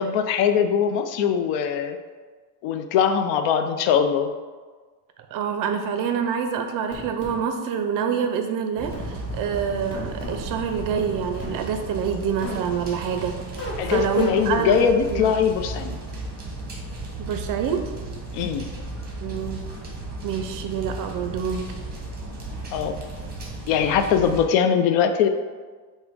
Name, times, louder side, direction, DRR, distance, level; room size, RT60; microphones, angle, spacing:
voice 1, 0.0-2.0 2.6-4.3 13.8-16.0 18.3-18.7 22.7-22.9 23.7-25.3, left 7 dB, 85° left, 8 dB, 0.5 m, -21 dB
voice 2, 5.3-15.2 17.2-17.9 19.2-19.6 20.2-21.7, right 7 dB, 50° right, 5 dB, 0.4 m, -27 dB
sound 1, 6.9-7.4 8.9-9.1 9.9-10.4 11.4-11.6 12.4-12.6 13.6-14.4, left 1 dB, 25° left, 1.2 m, -34 dB
sound 2, 8.8-24.4, right 2 dB, 20° right, 1.0 m, -35 dB
5.0 x 2.2 x 4.7 m, 1.4 s
cardioid pair, 145°, 43 cm